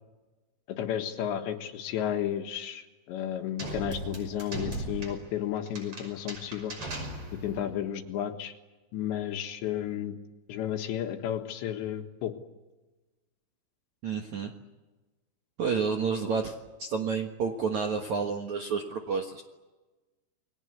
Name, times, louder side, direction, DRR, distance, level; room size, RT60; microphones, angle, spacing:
voice 1, 0.8-6.8 7.4-8.6 8.9-10.2 10.5-12.3, left 10 dB, 75° left, 6 dB, 3.7 m, -33 dB
sound 1, 3.6-7.7, right 1 dB, 30° right, 6.3 m, -38 dB
voice 2, 14.0-14.5 15.6-16.5 16.8-19.4, right 5 dB, 60° right, 3 dB, 2.1 m, -30 dB
29.5 x 22.0 x 8.2 m, 1.2 s
omnidirectional pair, 5.4 m